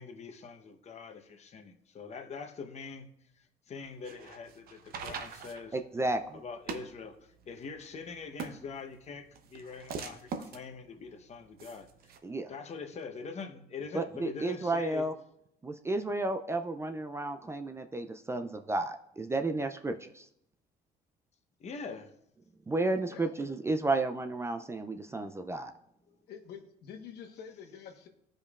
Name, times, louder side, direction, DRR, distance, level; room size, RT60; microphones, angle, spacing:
voice 1, 0.0-3.1 3.7-5.8 6.3-11.9 12.5-15.1 21.6-22.1 25.1-25.3, left 5 dB, 40° left, 5 dB, 1.0 m, -43 dB
sound 1, 3.8-12.2, right 5 dB, 65° right, 0.8 m, -44 dB
voice 2, 5.7-6.4 12.2-12.5 13.9-15.1 15.6-20.3 22.7-25.7, right 2 dB, 15° right, 7 dB, 0.4 m, -32 dB
voice 3, 26.3-28.1, left 7 dB, 75° left, 2 dB, 1.2 m, -47 dB
15.0 x 5.2 x 2.4 m, 0.76 s
cardioid pair, 110°, 17 cm